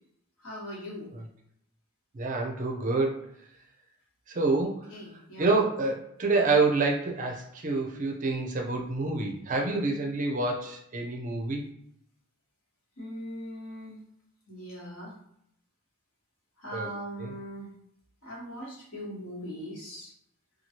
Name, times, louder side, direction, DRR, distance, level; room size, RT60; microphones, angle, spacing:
voice 1, 0.4-1.1 4.3-4.5 4.9-5.5 13.0-14.0 14.5-15.1 16.6-17.7 18.2-20.1, equal, 70° left, -5 dB, 1.3 m, -40 dB
voice 2, 2.1-3.3 4.4-4.9 5.4-11.6 16.7-16.9 17.2-17.3, right 3 dB, 35° right, 1 dB, 0.5 m, -27 dB
3.0 x 2.3 x 2.8 m, 0.72 s
head